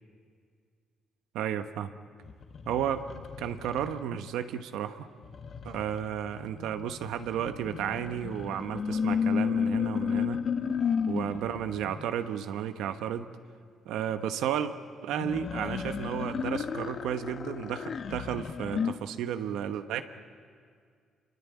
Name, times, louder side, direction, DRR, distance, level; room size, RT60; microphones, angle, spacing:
voice 1, 1.3-1.9 2.7-3.1 3.4-5.1 5.6-10.5 11.1-13.3 13.9-14.7 15.0-20.0, right 9 dB, 90° right, 8 dB, 1.1 m, -33 dB
sound 1, 2.2-4.2 5.2-12.0 15.1-18.9, left 6 dB, 55° left, 1.1 m, -33 dB
26.5 x 22.5 x 8.5 m, 2.1 s
cardioid pair, 90°, 0 cm